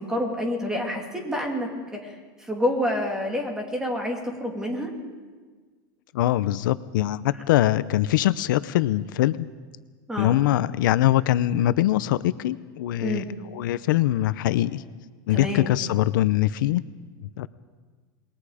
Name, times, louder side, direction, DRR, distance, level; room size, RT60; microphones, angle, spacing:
voice 1, 0.0-4.9 10.1-10.4 13.0-13.3 15.3-15.7, left 1 dB, 5° right, 1 dB, 2.7 m, -28 dB
voice 2, 6.1-9.5 10.2-13.2 13.5-14.8 15.3-16.8 17.4-17.5, left 14 dB, 80° left, 15 dB, 0.7 m, -22 dB
27.0 x 21.5 x 5.0 m, 1.4 s
supercardioid pair, 175°, 11 cm